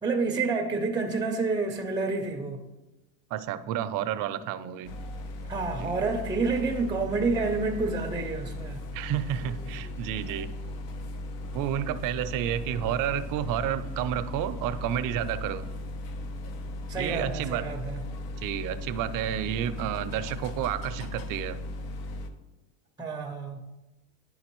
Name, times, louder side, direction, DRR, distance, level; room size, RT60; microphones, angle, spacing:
voice 1, 0.0-2.6 5.5-8.8 16.9-18.0 23.0-23.7, right 3 dB, 10° right, 3 dB, 0.5 m, -29 dB
voice 2, 3.3-4.9 5.8-6.0 8.9-10.5 11.5-15.7 17.0-17.6 18.4-21.6, right 10 dB, 60° right, 12 dB, 0.5 m, -30 dB
sound 1, 4.8-22.3, left 1 dB, 75° left, 0.8 m, -37 dB
10.5 x 3.7 x 3.0 m, 1.1 s
cardioid pair, 110°, 36 cm